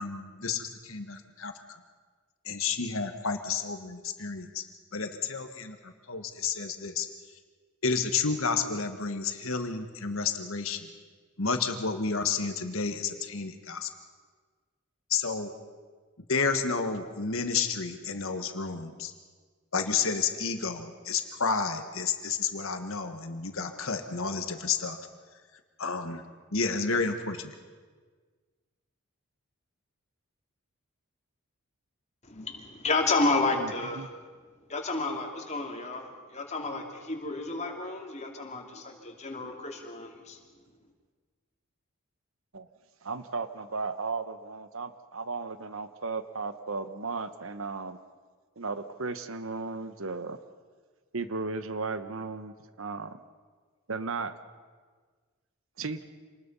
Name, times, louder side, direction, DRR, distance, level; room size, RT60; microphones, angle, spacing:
voice 1, 0.0-1.5 2.4-4.6 4.9-7.1 7.8-10.9 11.4-13.9 15.1-15.5 16.3-19.1 19.7-25.0 25.8-26.2 26.5-27.5, left 5 dB, 65° left, 7 dB, 1.6 m, -31 dB
voice 2, 32.2-34.1 34.7-40.4, left 3 dB, 30° left, 1 dB, 2.9 m, -31 dB
voice 3, 33.5-34.1 42.5-42.7 43.0-48.0 48.6-50.4 51.1-53.2 53.9-54.3 55.8-56.0, right 4 dB, 65° right, 11 dB, 1.1 m, -35 dB
27.0 x 20.0 x 5.6 m, 1.5 s
head